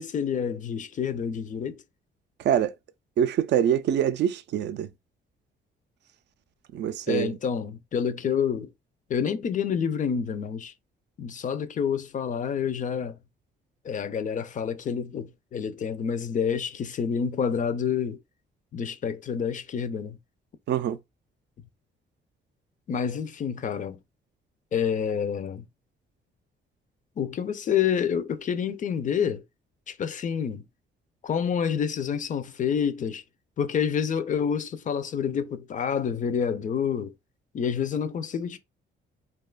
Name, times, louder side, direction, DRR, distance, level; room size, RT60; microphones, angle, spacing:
voice 1, 0.0-1.8 7.1-8.7 9.1-10.7 11.2-13.2 13.8-18.2 18.7-20.2 22.9-24.0 24.7-25.6 27.2-29.4 29.9-30.6 31.2-33.2 33.6-37.1 37.5-38.6, left 7 dB, 40° left, 0.4 m, -28 dB
voice 2, 3.2-4.9 6.7-7.4 20.7-21.0, right 9 dB, 60° right, 0.4 m, -24 dB
2.7 x 2.3 x 2.2 m
cardioid pair, 90°, 20 cm